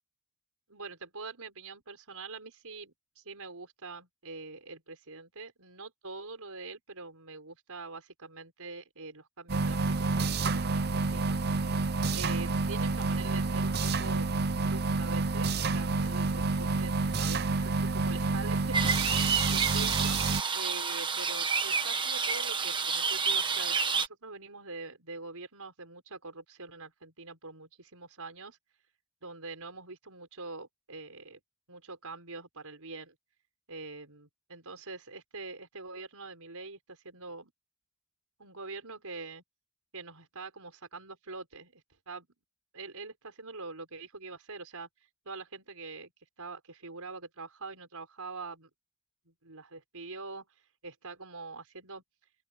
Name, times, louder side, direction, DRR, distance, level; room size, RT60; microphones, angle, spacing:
voice 1, 0.7-11.4 12.1-14.3 14.6-18.7 19.5-20.2 20.5-28.6 29.2-31.4 31.7-33.1 33.7-37.5 38.4-39.4 39.9-42.3 42.7-44.9 45.2-46.1 46.4-48.7 49.2-50.5 50.8-52.0, right 3 dB, 90° right, 5.1 m, -44 dB
sound 1, 9.5-20.4, right 3 dB, 45° right, 0.7 m, -29 dB
sound 2, 18.7-24.1, right 5 dB, 20° right, 1.3 m, -29 dB
open air
head